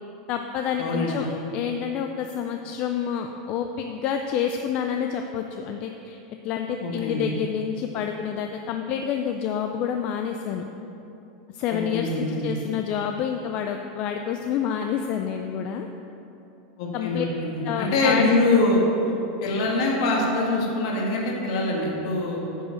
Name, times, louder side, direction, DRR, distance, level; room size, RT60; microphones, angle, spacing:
voice 1, 0.3-6.2 6.4-10.6 11.5-15.9 16.9-17.3 17.6-18.3, left 8 dB, 35° left, 4 dB, 0.4 m, -28 dB
voice 2, 0.8-1.1 6.8-7.2 11.7-12.5 16.8-18.8 19.4-22.4, left 2 dB, 55° left, -2 dB, 1.7 m, -24 dB
9.6 x 5.2 x 6.4 m, 2.9 s
supercardioid pair, 170°, 3 cm